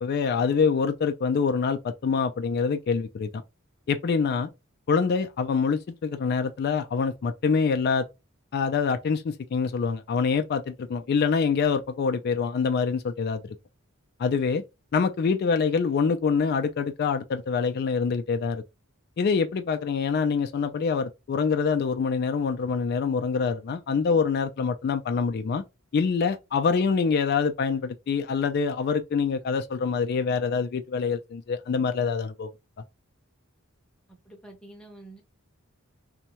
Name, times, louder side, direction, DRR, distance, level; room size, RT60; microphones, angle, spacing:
voice 1, 0.0-3.4 3.9-4.5 4.9-8.1 8.5-13.6 14.2-14.6 14.9-18.6 19.2-25.6 25.9-32.5, left 5 dB, 50° left, 0.3 m, -25 dB
voice 2, 34.1-35.2, right 2 dB, 5° left, 0.7 m, -47 dB
2.7 x 2.2 x 2.9 m
head